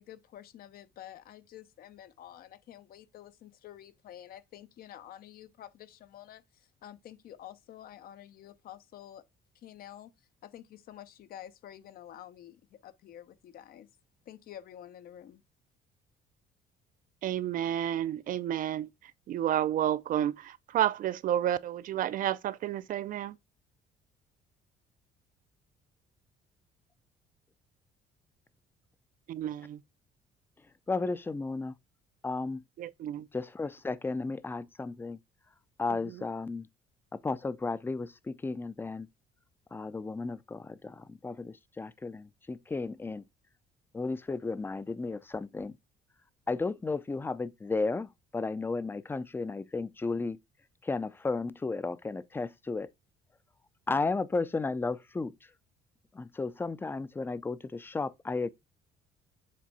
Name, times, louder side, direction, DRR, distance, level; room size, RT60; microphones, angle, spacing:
voice 1, 0.0-9.2 9.5-10.1 10.4-13.9 14.3-15.4, left 11 dB, 60° left, 0.7 m, -49 dB
voice 2, 17.2-23.3 29.3-29.8 32.8-33.3 36.1-36.2, right 11 dB, 55° right, 0.4 m, -31 dB
voice 3, 30.9-31.7 32.2-32.6 33.3-35.2 35.8-36.7 37.1-39.1 39.7-43.2 43.9-45.7 46.5-50.4 50.8-52.9 53.9-55.3 56.1-58.5, left 3 dB, 15° left, 0.4 m, -34 dB
7.4 x 3.4 x 4.1 m
cardioid pair, 110°, 17 cm